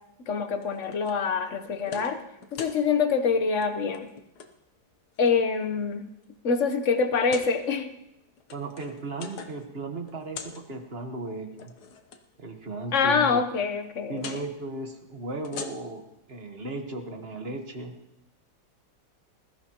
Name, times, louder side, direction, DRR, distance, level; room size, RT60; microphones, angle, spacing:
voice 1, 0.3-2.2 2.5-4.1 5.2-6.1 6.4-7.9 12.9-14.2, left 5 dB, 50° left, 8 dB, 1.2 m, -25 dB
sound 1, 0.6-1.2 1.6-2.1 2.4-2.8 3.5-3.7 3.9-4.5 5.1-5.7 6.2-6.3 7.2-7.5 8.3-9.7 9.9-10.6 11.5-12.2 14.2-14.4 15.3-16.1, left 6 dB, 65° left, 1.5 m, -41 dB
voice 2, 8.5-11.7 12.4-13.4 14.1-16.0 16.3-17.9, right 2 dB, 35° right, 4 dB, 1.5 m, -36 dB
20.5 x 14.0 x 3.0 m, 0.87 s
omnidirectional pair, 1.9 m